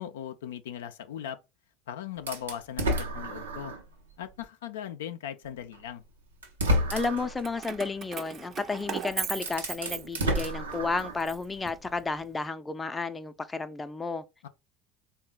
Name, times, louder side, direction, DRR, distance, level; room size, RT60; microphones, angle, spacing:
voice 1, 0.0-1.4 1.9-3.8 4.2-6.0 14.4-14.5, left 10 dB, 75° left, 0.4 m, -38 dB
sound 1, 2.3-3.9 4.4-4.5 5.7-5.8 6.4-7.4 8.8-8.9 9.3-11.3, equal, 85° right, 0.7 m, -30 dB
voice 2, 6.9-14.2, left 4 dB, 20° left, 0.5 m, -32 dB
Keys jangling, 7.4-10.5 11.0-12.3, right 7 dB, 45° right, 0.5 m, -38 dB
3.6 x 2.1 x 3.9 m
hypercardioid pair, 70°, 0 cm